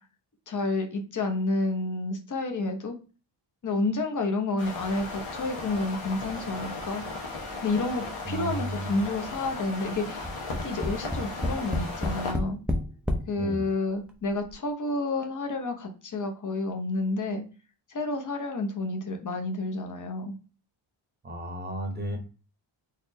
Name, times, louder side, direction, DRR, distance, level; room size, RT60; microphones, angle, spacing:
voice 1, 0.5-3.0 3.6-7.0 7.6-10.3 10.6-12.6 13.3-17.4 17.9-20.3, left 2 dB, 40° left, 5 dB, 0.7 m, -30 dB
sound 1, 4.6-12.3, left 2 dB, 90° left, 1.2 m, -36 dB
voice 2, 8.2-9.0 13.4-13.6 21.2-22.2, equal, 20° right, 3 dB, 0.7 m, -33 dB
Tap, 10.2-13.3 14.1-14.2 14.5-14.6, left 1 dB, 5° right, 0.3 m, -29 dB
4.1 x 3.0 x 2.6 m, 0.35 s
wide cardioid pair, 165°, 49 cm